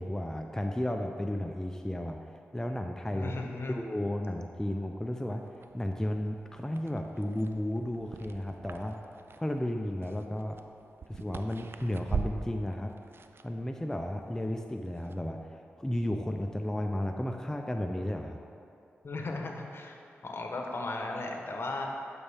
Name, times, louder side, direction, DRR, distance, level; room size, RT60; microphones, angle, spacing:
voice 1, 0.0-2.2 2.5-3.3 3.7-5.4 5.7-9.0 9.4-10.6 11.1-12.9 13.4-15.4 15.8-18.4, left 1 dB, 10° left, 4 dB, 0.5 m, -33 dB
voice 2, 3.1-3.8 19.0-21.9, left 2 dB, 55° left, 1 dB, 1.1 m, -36 dB
sound 1, 5.4-15.3, right 5 dB, 55° right, 0.4 m, -42 dB
11.0 x 5.4 x 3.5 m, 2.6 s
cardioid pair, 45°, 5 cm